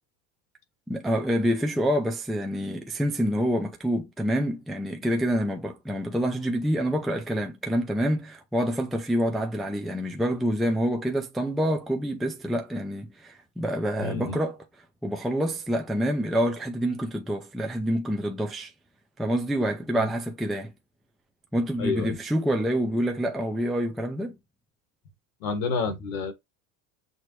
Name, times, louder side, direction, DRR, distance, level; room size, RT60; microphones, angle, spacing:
voice 1, 0.9-14.6 15.0-18.7 19.2-20.7 21.5-24.3, equal, ahead, 0.5 m, -27 dB
voice 2, 14.0-14.4 19.9-20.1 21.8-22.2 25.4-26.3, left 4 dB, 85° left, 1.6 m, -29 dB
6.2 x 2.1 x 3.0 m
supercardioid pair, 110°, 41 cm